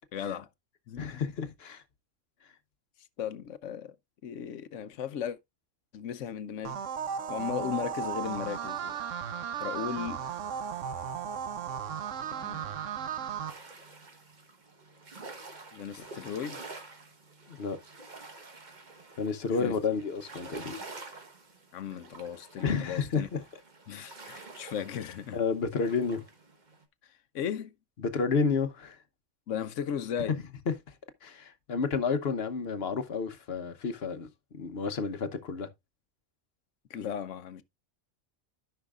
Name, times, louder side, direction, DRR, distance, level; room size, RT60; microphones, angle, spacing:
voice 1, 0.1-0.5 0.9-1.5 3.2-3.9 4.2-5.4 5.9-6.8 7.3-9.0 9.6-10.2 12.4-12.7 15.7-16.6 19.6-19.8 21.7-23.3 23.9-25.4 27.3-27.7 29.5-30.4 36.9-37.6, left 8 dB, 75° left, 1.1 m, -36 dB
voice 2, 1.0-1.8 17.5-17.8 19.2-20.7 22.6-23.4 23.9-24.0 25.3-26.2 28.0-29.0 30.7-30.8 31.2-34.3 34.5-35.7, left 5 dB, 55° left, 1.1 m, -30 dB
sound 1, 6.6-13.5, right 7 dB, 80° right, 1.2 m, -35 dB
sound 2, 13.5-26.8, right 3 dB, 40° right, 1.4 m, -48 dB
13.5 x 5.7 x 2.4 m
omnidirectional pair, 1.3 m